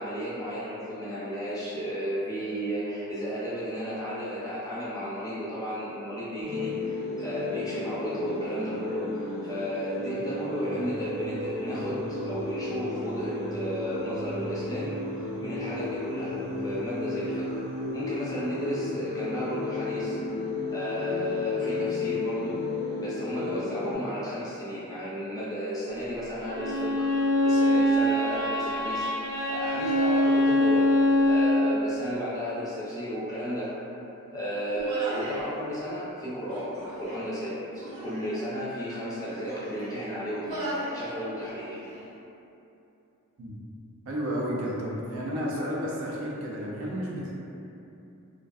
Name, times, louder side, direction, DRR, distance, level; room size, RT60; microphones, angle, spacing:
voice 1, 0.0-15.0 15.4-20.2 20.7-22.6 23.0-29.1 29.5-30.9 31.2-33.9 34.3-40.7 40.9-41.8, equal, 15° left, -9 dB, 0.5 m, -33 dB
sound 1, 6.4-23.9, left 3 dB, 25° right, 0.8 m, -33 dB
Bowed string instrument, 26.4-31.7, left 1 dB, 80° left, 0.7 m, -23 dB
Human voice, 34.7-35.5 36.4-37.3 37.8-38.4 39.1-40.0 40.4-41.0 41.4-42.1, right 1 dB, 90° right, 0.8 m, -37 dB
voice 2, 44.1-47.3, equal, 65° right, -4 dB, 0.4 m, -32 dB
2.5 x 2.2 x 2.3 m, 2.8 s
head